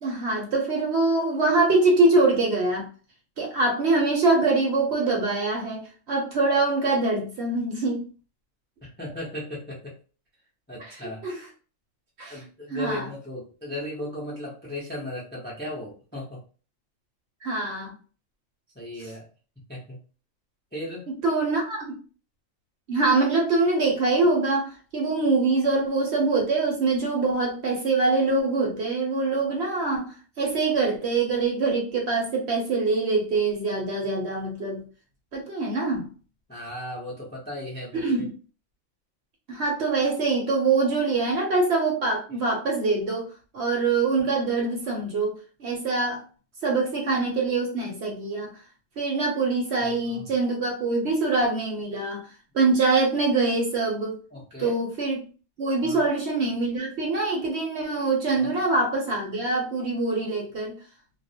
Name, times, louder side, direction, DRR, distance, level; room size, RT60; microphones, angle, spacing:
voice 1, 0.0-2.9 3.4-8.0 10.8-10.9 11.2-11.4 12.2-12.4 12.7-13.1 17.4-17.9 21.2-22.0 22.9-34.8 35.3-36.1 37.9-38.3 39.5-43.3 43.5-46.2 46.6-48.5 49.0-52.3 52.5-54.1 54.6-55.2 55.6-60.8, right 3 dB, 60° right, 0 dB, 0.8 m, -24 dB
voice 2, 8.8-10.0 10.7-11.2 12.3-16.4 18.7-19.2 19.7-20.0 20.7-21.1 36.5-38.0 49.8-50.3 54.3-54.7 55.8-56.1 58.4-58.6, left 1 dB, 15° left, -4 dB, 0.4 m, -36 dB
2.3 x 2.0 x 2.6 m, 0.38 s
omnidirectional pair, 1.4 m